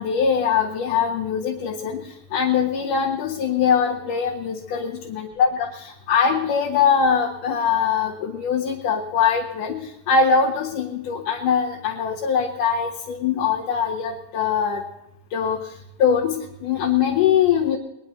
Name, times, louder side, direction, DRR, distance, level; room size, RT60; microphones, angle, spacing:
voice 1, 0.0-14.8 15.3-15.7 16.0-17.8, left 6 dB, 70° left, -5 dB, 3.0 m, -22 dB
22.0 x 11.0 x 4.3 m, 0.85 s
omnidirectional pair, 4.0 m